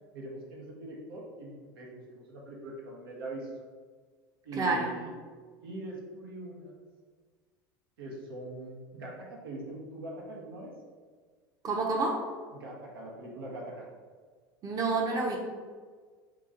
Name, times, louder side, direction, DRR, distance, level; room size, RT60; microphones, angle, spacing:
voice 1, 0.1-3.5 4.4-5.1 5.6-6.7 8.0-10.7 12.5-13.9, right 2 dB, 85° right, -2 dB, 0.8 m, -42 dB
voice 2, 4.6-4.9 11.6-12.2 14.6-15.4, right 3 dB, 30° right, -1 dB, 0.7 m, -28 dB
2.9 x 2.5 x 3.8 m, 1.5 s
hypercardioid pair, 90°, 12 cm